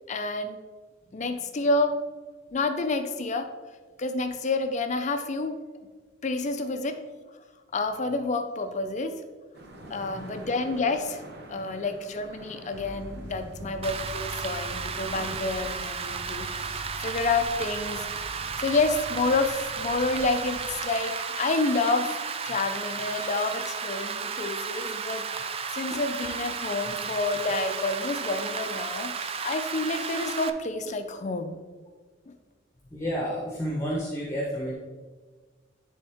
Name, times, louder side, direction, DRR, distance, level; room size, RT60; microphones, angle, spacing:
voice 1, 0.1-0.6 1.1-2.0 2.5-3.5 4.0-5.6 6.2-7.0 7.7-9.2 9.9-11.2 11.5-22.2 22.4-31.6 32.3-32.4, left 3 dB, 40° left, 7 dB, 0.5 m, -29 dB
sound 1, 9.5-15.4, right 2 dB, 60° right, 0.9 m, -47 dB
voice 2, 9.8-10.3 11.5-11.8 13.6-13.7 32.9-34.7, equal, 15° left, -4 dB, 1.0 m, -32 dB
sound 2, 12.7-20.8, right 1 dB, 75° right, 1.1 m, -43 dB
Rain, 13.8-30.5, right 6 dB, 30° right, 0.4 m, -34 dB
10.5 x 3.6 x 3.5 m, 1.4 s
head